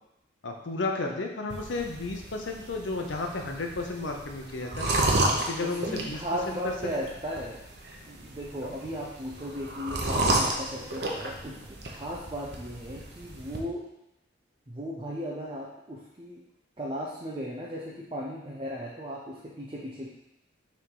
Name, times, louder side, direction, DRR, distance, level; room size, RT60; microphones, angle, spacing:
voice 1, 0.4-4.9 5.3-6.2 6.5-6.7 8.6-8.8, left 3 dB, 85° left, 3 dB, 0.7 m, -33 dB
sound 1, 1.5-13.6, right 2 dB, 60° right, 0.9 m, -32 dB
voice 2, 5.6-7.6 8.1-13.8 14.7-16.4 16.8-20.1, equal, 25° right, -5 dB, 0.7 m, -36 dB
6.1 x 3.5 x 4.7 m, 0.86 s
head